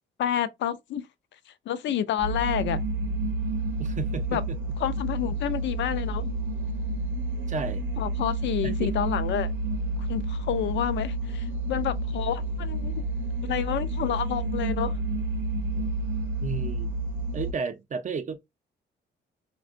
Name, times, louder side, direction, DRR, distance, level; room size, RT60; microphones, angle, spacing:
voice 1, 0.2-1.0 1.7-2.8 4.3-4.4 4.8-6.3 8.0-9.5 10.1-12.9 13.4-15.0, left 10 dB, 65° left, 0.4 m, -29 dB
sound 1, 2.2-17.5, right 2 dB, 80° right, 0.7 m, -30 dB
voice 2, 3.8-4.6 7.5-7.8 8.6-8.9 16.4-16.9 17.3-18.4, right 5 dB, 40° right, 0.5 m, -33 dB
3.5 x 2.2 x 2.4 m
cardioid pair, 90°, 20 cm